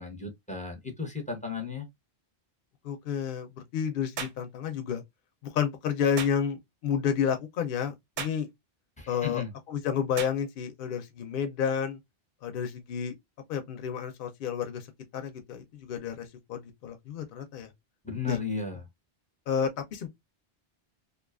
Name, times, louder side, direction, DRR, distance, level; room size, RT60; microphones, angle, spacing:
voice 1, 0.0-1.9 9.0-9.5 18.0-18.8, left 5 dB, 10° left, 0.6 m, -34 dB
voice 2, 2.8-5.0 5.4-8.5 9.1-9.4 9.7-12.0 12.4-13.1 13.5-14.9 15.1-17.7 18.3-18.4 19.5-20.1, left 7 dB, 65° left, 0.7 m, -30 dB
sound 1, 4.2-4.4 6.2-6.4 8.2-8.4 10.2-10.4, right 6 dB, 55° right, 0.7 m, -36 dB
2.6 x 2.3 x 2.3 m
omnidirectional pair, 1.0 m